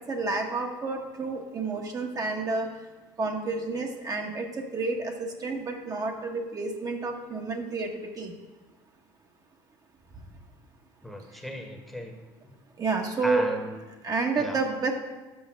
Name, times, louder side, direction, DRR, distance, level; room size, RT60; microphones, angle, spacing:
voice 1, 0.0-2.7 3.2-8.3 12.8-13.5 14.0-14.9, right 3 dB, 35° right, 2 dB, 1.0 m, -30 dB
voice 2, 11.0-12.1 12.4-12.5 13.2-13.8 14.4-14.6, equal, ahead, 3 dB, 1.1 m, -36 dB
6.3 x 5.1 x 5.9 m, 1.2 s
hypercardioid pair, 80°, 11 cm